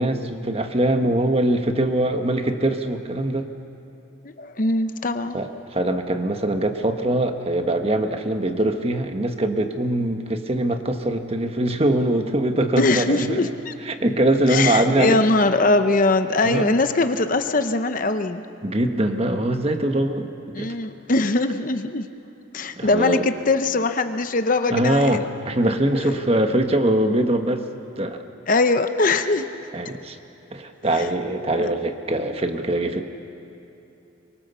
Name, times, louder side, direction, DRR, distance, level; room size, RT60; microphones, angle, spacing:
voice 1, 0.0-3.5 5.3-13.5 13.8-15.2 16.4-16.7 18.6-20.3 20.6-20.7 22.7-23.3 24.7-27.7 28.0-28.2 29.7-30.2 30.5-33.0, right 1 dB, 30° right, 6 dB, 1.2 m, -22 dB
voice 2, 4.2-5.4 12.8-13.7 14.5-18.5 20.5-22.1 22.5-25.2 26.0-26.2 28.5-29.5 31.0-31.1 31.6-31.7, left 2 dB, 45° left, 9 dB, 0.8 m, -21 dB
24.0 x 23.0 x 6.9 m, 2.9 s
head